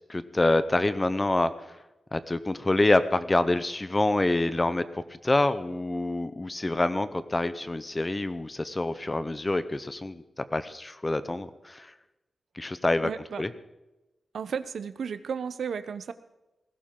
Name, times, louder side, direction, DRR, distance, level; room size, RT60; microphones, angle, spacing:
voice 1, 0.1-1.8 2.1-11.9 12.5-13.1 13.4-13.5, left 2 dB, 20° left, 13 dB, 0.8 m, -26 dB
voice 2, 13.0-13.4 14.3-16.1, right 6 dB, 80° right, 13 dB, 0.7 m, -33 dB
18.5 x 16.0 x 3.8 m, 1.0 s
wide cardioid pair, 115°, 0 cm